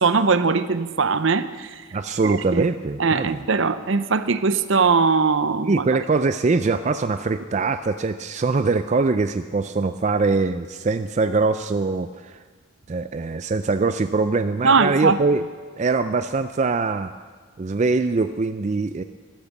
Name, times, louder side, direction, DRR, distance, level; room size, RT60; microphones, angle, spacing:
voice 1, 0.0-1.7 2.2-2.6 3.0-5.8 14.6-15.2, right 4 dB, 60° right, 13 dB, 0.7 m, -20 dB
voice 2, 1.9-3.4 5.6-12.4 12.9-15.4 15.8-17.1 17.6-19.0, right 3 dB, 35° right, 10 dB, 0.4 m, -22 dB
13.5 x 12.5 x 7.2 m, 1.5 s
head